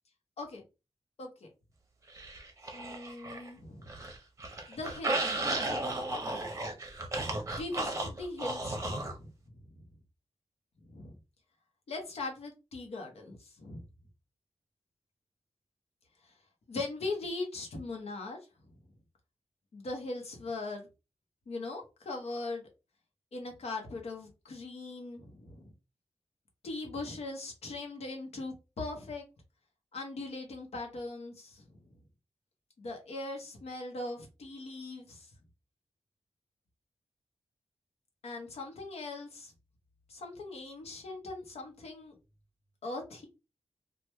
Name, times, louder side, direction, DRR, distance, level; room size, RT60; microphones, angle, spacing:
sound 1, 2.1-3.5 3.8-9.2, right 2 dB, 30° right, 0.6 m, -34 dB
voice 1, 2.7-3.9 4.7-5.7 7.6-9.3 9.8-9.9 10.8-11.2 11.9-13.8 16.2-16.3 16.7-18.4 19.7-20.9 21.5-22.7 23.3-25.7 26.6-29.2 29.9-31.6 32.8-35.3 38.2-39.5 40.1-42.2 42.8-43.3, left 2 dB, 80° left, 2 dB, 0.8 m, -40 dB
3.0 x 2.2 x 3.2 m, 0.28 s
wide cardioid pair, 125°, 10 cm